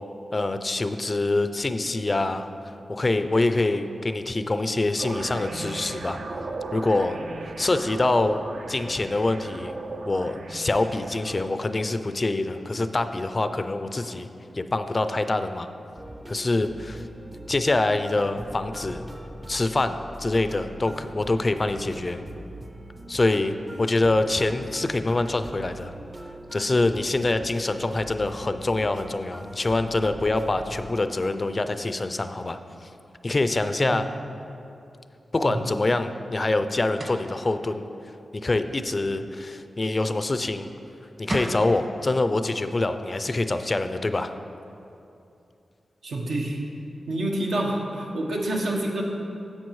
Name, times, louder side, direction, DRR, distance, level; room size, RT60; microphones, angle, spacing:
voice 1, 0.3-2.5 2.9-6.2 6.7-7.2 7.6-8.4 8.7-9.7 10.1-14.3 14.5-15.7 16.3-17.0 17.5-19.0 19.5-22.2 23.1-25.9 26.5-32.6 33.2-34.1 35.3-37.8 38.3-40.7 41.2-44.3, left 2 dB, 35° left, 9 dB, 0.4 m, -25 dB
sound 1, 5.0-11.5, right 3 dB, 70° right, 0.5 m, -36 dB
sound 2, 16.0-30.9, right 1 dB, 25° right, 0.6 m, -42 dB
sound 3, 37.0-37.3 40.9-41.0 41.3-41.6, right 1 dB, 40° right, 1.3 m, -31 dB
voice 2, 46.0-46.6 47.1-49.0, right 1 dB, 85° right, -1 dB, 1.0 m, -27 dB
10.5 x 7.6 x 3.1 m, 2.7 s
cardioid pair, 65°, 0 cm